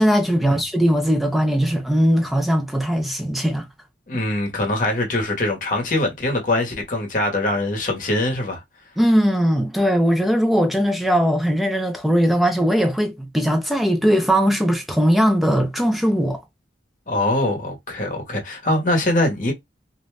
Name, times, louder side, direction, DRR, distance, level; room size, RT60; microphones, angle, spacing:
voice 1, 0.0-3.7 9.0-16.4, equal, ahead, 0.4 m, -19 dB
voice 2, 4.1-8.6 17.1-19.5, left 1 dB, 45° left, 0.9 m, -23 dB
2.5 x 2.2 x 3.1 m
head